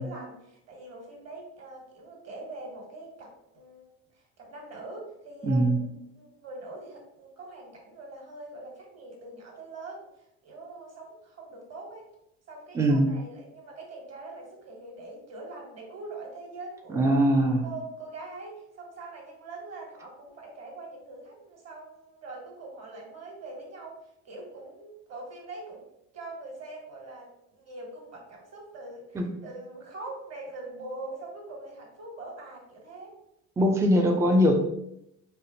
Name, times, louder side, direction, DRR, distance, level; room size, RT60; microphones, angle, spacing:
voice 1, 0.0-5.9 6.2-10.1 10.4-12.1 12.5-17.1 17.6-23.9 24.2-25.9 26.1-33.1, right 2 dB, 35° right, 0 dB, 1.3 m, -43 dB
voice 2, 5.4-5.8 12.7-13.1 16.9-17.6 29.1-29.3 33.6-34.6, equal, 5° right, 3 dB, 0.3 m, -21 dB
3.2 x 2.1 x 2.7 m, 0.78 s
hypercardioid pair, 65°, 42 cm